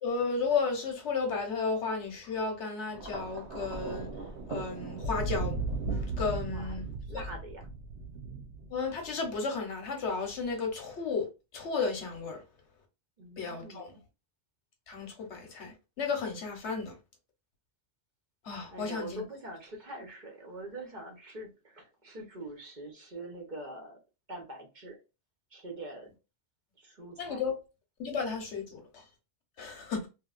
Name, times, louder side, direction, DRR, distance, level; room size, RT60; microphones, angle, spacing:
voice 1, 0.0-4.1 4.5-5.6 5.9-6.9 7.1-7.2 8.7-11.3 11.5-12.4 13.4-13.9 14.9-17.0 18.4-19.2 27.2-27.5 28.0-29.0 29.6-30.1, left 4 dB, 85° left, 1.2 m, -33 dB
Thunder, 2.9-9.3 10.3-10.5, right 3 dB, 70° right, 1.1 m, -36 dB
voice 2, 6.5-7.7 13.2-14.0 18.7-24.0 24.3-25.0 25.5-26.1 26.8-27.4, right 1 dB, 45° right, 0.9 m, -44 dB
3.1 x 2.7 x 2.4 m
omnidirectional pair, 1.2 m